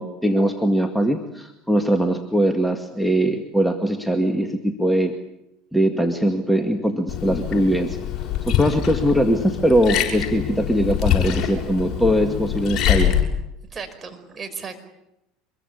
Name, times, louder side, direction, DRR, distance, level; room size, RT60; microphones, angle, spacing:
voice 1, 0.0-5.2 5.7-8.0 8.5-13.2, equal, ahead, 6 dB, 2.1 m, -21 dB
Liquid, 7.1-13.2, left 10 dB, 45° left, 6.2 m, -24 dB
voice 2, 13.7-14.8, right 5 dB, 25° right, 6 dB, 5.1 m, -35 dB
25.0 x 22.5 x 8.4 m, 0.86 s
figure-of-eight pair, 70°, 0 cm